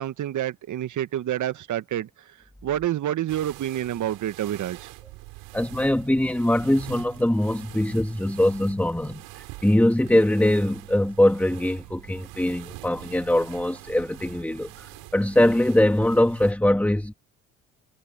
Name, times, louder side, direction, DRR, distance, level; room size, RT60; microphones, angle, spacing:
voice 1, 0.0-2.1 2.6-4.9, right 12 dB, 50° right, 1.7 m, -28 dB
sound 1, 3.3-16.5, right 22 dB, 70° right, 6.5 m, -44 dB
voice 2, 5.5-9.2 9.6-17.1, left 1 dB, 5° left, 2.5 m, -22 dB
hypercardioid pair, 60°, 37 cm